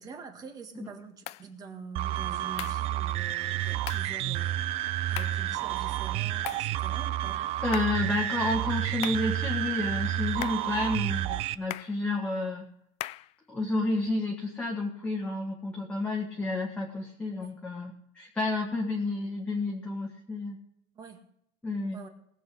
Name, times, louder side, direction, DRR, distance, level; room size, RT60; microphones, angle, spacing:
voice 1, 0.0-7.4 17.4-17.5 21.0-21.2 21.9-22.1, right 5 dB, 25° right, 5 dB, 1.8 m, -45 dB
sound 1, 1.3-1.5 2.6-2.9 3.9-4.1 5.2-5.5 6.5-6.7 7.7-8.0 9.0-9.3 10.4-10.7 11.7-12.0 13.0-13.3, left 17 dB, 45° left, 0.4 m, -38 dB
sound 2, 1.9-11.5, right 14 dB, 45° right, 0.5 m, -30 dB
voice 2, 7.6-12.6 13.5-20.6 21.6-22.0, left 2 dB, 10° left, -2 dB, 1.6 m, -30 dB
19.5 x 7.8 x 4.8 m, 0.74 s
cardioid pair, 165°, 14 cm